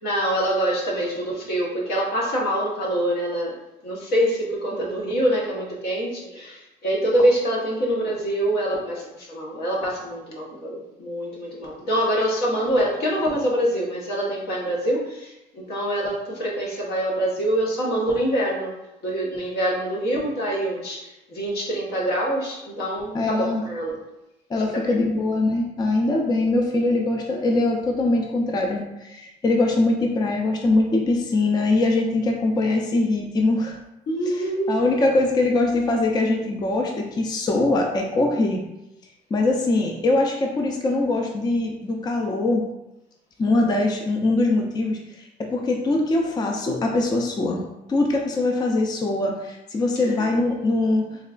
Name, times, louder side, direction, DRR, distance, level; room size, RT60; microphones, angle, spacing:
voice 1, 0.0-3.6 3.8-18.7 19.0-24.0 24.6-25.0 34.1-34.8 50.0-50.3, right 1 dB, 70° left, -3 dB, 1.1 m, -25 dB
voice 2, 23.1-23.6 24.5-33.8 34.2-38.6 39.3-42.6 43.4-47.6 47.9-51.1, left 2 dB, 25° left, 1 dB, 0.4 m, -22 dB
3.6 x 3.0 x 2.4 m, 0.93 s
cardioid pair, 110°, 17 cm